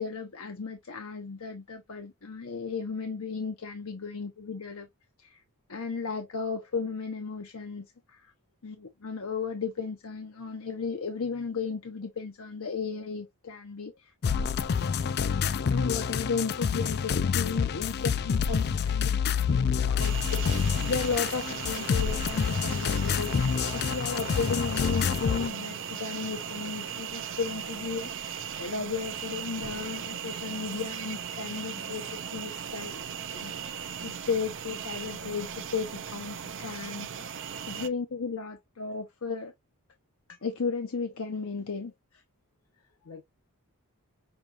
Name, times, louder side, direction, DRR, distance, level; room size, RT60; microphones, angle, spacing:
voice 1, 0.0-4.9 5.2-5.4 5.7-8.3 8.6-14.1 15.7-33.8 34.0-39.5 40.3-41.9, left 5 dB, 65° left, 0.8 m, -35 dB
sound 1, 14.2-25.5, left 6 dB, 45° left, 0.4 m, -27 dB
sound 2, 20.0-37.9, right 7 dB, 55° right, 0.6 m, -37 dB
voice 2, 33.3-34.3 42.7-43.2, left 5 dB, 80° left, 1.6 m, -53 dB
6.4 x 2.4 x 2.8 m
head